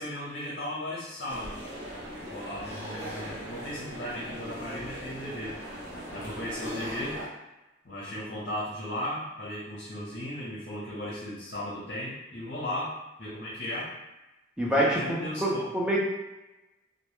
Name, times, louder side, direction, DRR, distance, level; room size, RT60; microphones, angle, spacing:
voice 1, 0.0-1.5 2.2-5.6 6.1-7.2 7.8-13.9 14.7-15.7, left 1 dB, 50° left, -7 dB, 0.6 m, -36 dB
sound 1, 1.3-7.3, equal, 60° right, 0.7 m, -39 dB
voice 2, 14.6-16.0, right 1 dB, 5° right, -5 dB, 0.4 m, -26 dB
2.1 x 2.1 x 3.0 m, 0.99 s
head